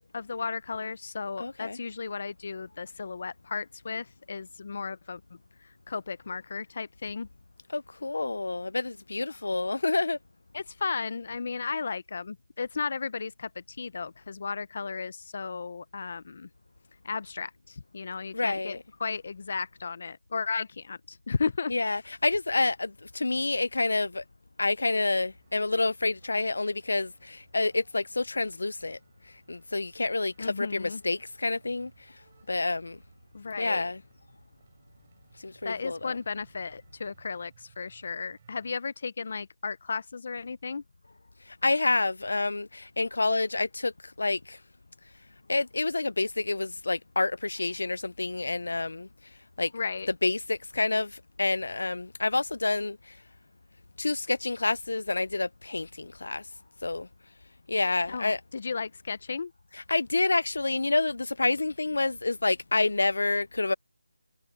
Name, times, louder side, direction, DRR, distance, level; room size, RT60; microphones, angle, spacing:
voice 1, 0.1-5.2 5.6-7.3 10.5-16.5 17.0-21.7 30.4-31.0 33.3-33.9 35.6-40.8 49.7-50.1 58.1-59.5, left 5 dB, 45° left, 0.6 m, -34 dB
voice 2, 1.4-1.8 7.7-10.2 18.3-18.8 21.7-24.2 24.6-29.0 29.5-31.9 32.5-33.0 33.6-34.0 35.4-36.2 41.5-44.6 45.5-49.1 49.6-49.7 50.2-53.2 54.0-56.4 56.8-57.1 57.7-58.4 59.7-63.7, left 3 dB, 80° left, 0.4 m, -28 dB
sound 1, 25.3-38.7, right 7 dB, 30° right, 6.3 m, -62 dB
figure-of-eight pair, 175°, 0 cm